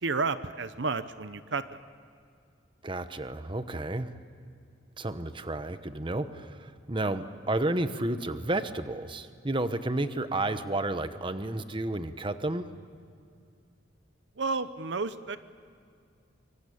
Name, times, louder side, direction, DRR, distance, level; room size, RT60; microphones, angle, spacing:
voice 1, 0.0-1.8 14.4-15.4, right 4 dB, 70° right, 12 dB, 0.9 m, -31 dB
voice 2, 2.8-4.1 5.0-12.6, right 2 dB, 25° right, 10 dB, 1.0 m, -31 dB
24.5 x 24.5 x 8.6 m, 2.3 s
head